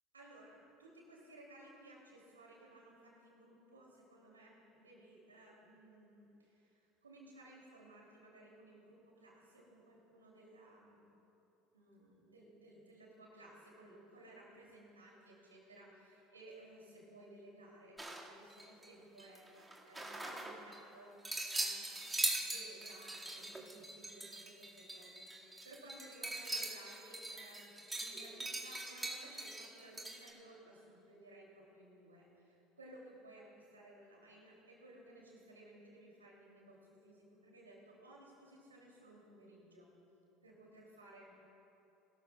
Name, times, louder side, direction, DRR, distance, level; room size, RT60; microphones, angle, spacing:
voice 1, 0.1-11.0 11.7-39.9 40.4-41.3, right 1 dB, 90° right, -3 dB, 2.8 m, -58 dB
sound 1, 18.0-18.9 19.2-20.8 21.2-30.3, right 2 dB, 10° right, 2.0 m, -41 dB
21.5 x 13.0 x 2.4 m, 3.0 s
hypercardioid pair, 70°, 0 cm